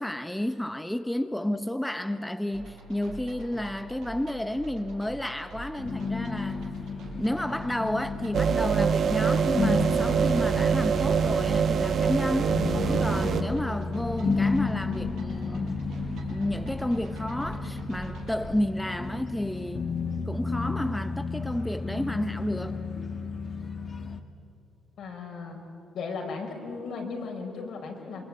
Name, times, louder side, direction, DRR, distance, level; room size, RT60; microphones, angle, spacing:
voice 1, 0.0-6.7 7.1-12.6 12.9-15.8 16.3-19.9 20.3-22.8, left 1 dB, 5° left, 0.9 m, -31 dB
sound 1, 2.5-18.4, right 1 dB, 85° right, 5.4 m, -45 dB
sound 2, 5.8-24.2, left 4 dB, 35° left, 1.7 m, -32 dB
sound 3, 8.3-13.4, right 6 dB, 60° right, 1.5 m, -24 dB
voice 2, 25.0-25.6 25.9-28.2, left 4 dB, 70° left, 5.2 m, -36 dB
26.5 x 23.5 x 8.7 m
cardioid pair, 90°, 0 cm